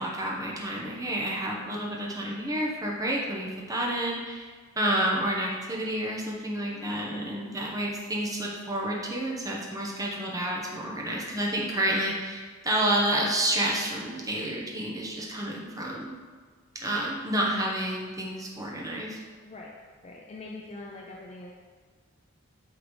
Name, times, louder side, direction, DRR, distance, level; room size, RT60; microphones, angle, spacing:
voice 1, 0.0-4.5 4.8-16.1 16.7-19.2, right 1 dB, 15° right, -3 dB, 0.8 m, -29 dB
voice 2, 6.7-7.4 19.4-19.7 20.0-21.5, left 2 dB, 30° left, -2 dB, 0.4 m, -43 dB
8.1 x 3.9 x 3.2 m, 1.5 s
head